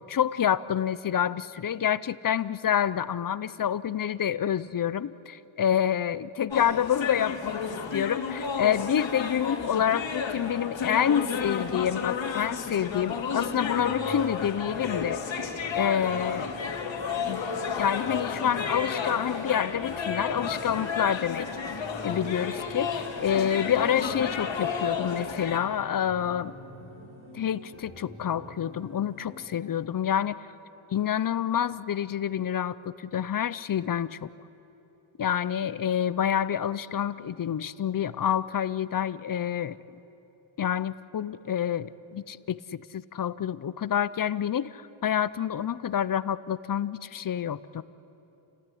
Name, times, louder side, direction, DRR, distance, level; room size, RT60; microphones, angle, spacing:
voice 1, 0.0-15.2 15.7-16.5 17.3-17.4 17.8-21.5 22.0-26.5 27.3-30.4 30.9-34.3 35.2-39.8 40.6-47.8, left 9 dB, 45° left, 17 dB, 0.6 m, -28 dB
sound 1, 6.5-25.6, left 6 dB, 60° left, 2.5 m, -32 dB
sound 2, 13.7-29.7, equal, 25° right, 5.4 m, -47 dB
29.5 x 16.5 x 9.9 m, 3.0 s
wide cardioid pair, 130°, 49 cm